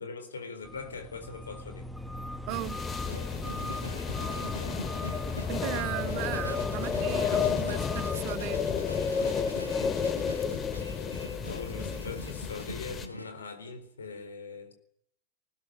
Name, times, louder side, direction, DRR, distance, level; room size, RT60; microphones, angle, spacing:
voice 1, 0.0-1.9 5.6-6.0 7.0-7.9 11.4-14.7, left 4 dB, 70° left, 4.1 m, -41 dB
sound 1, 0.6-8.2, left 1 dB, ahead, 1.7 m, -38 dB
sound 2, 2.5-13.1, left 6 dB, 25° left, 1.8 m, -32 dB
voice 2, 2.5-2.8 5.5-8.7, right 22 dB, 45° right, 0.9 m, -36 dB
sound 3, 3.0-13.3, equal, 90° left, 1.7 m, -43 dB
21.0 x 19.5 x 9.8 m
figure-of-eight pair, 90°, 0 cm